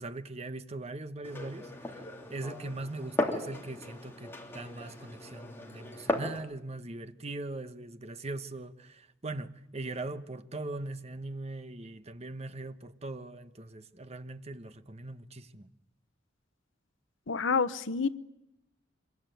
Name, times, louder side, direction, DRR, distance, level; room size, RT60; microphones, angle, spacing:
voice 1, 0.0-2.0 2.3-15.7, right 2 dB, 35° right, 1.0 m, -40 dB
Glass, 1.2-6.4, left 1 dB, 10° left, 3.1 m, -36 dB
voice 2, 17.3-18.1, left 5 dB, 80° left, 0.9 m, -28 dB
25.5 x 22.0 x 9.2 m
head